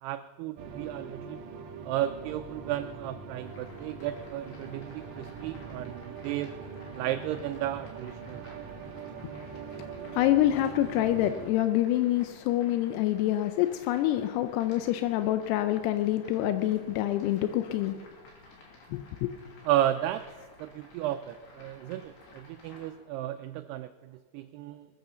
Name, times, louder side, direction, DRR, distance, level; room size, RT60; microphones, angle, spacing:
voice 1, 0.0-1.4 1.8-6.5 6.9-8.6 19.7-20.2 20.6-24.9, right 12 dB, 90° right, 9 dB, 2.3 m, -33 dB
sound 1, 0.6-11.5, right 5 dB, 65° right, 2.3 m, -42 dB
sound 2, 3.4-22.9, left 3 dB, 65° left, 5.0 m, -54 dB
voice 2, 10.1-18.0 18.9-19.3, left 13 dB, 80° left, 9 dB, 2.4 m, -26 dB
20.0 x 8.8 x 6.9 m, 1.5 s
omnidirectional pair, 5.3 m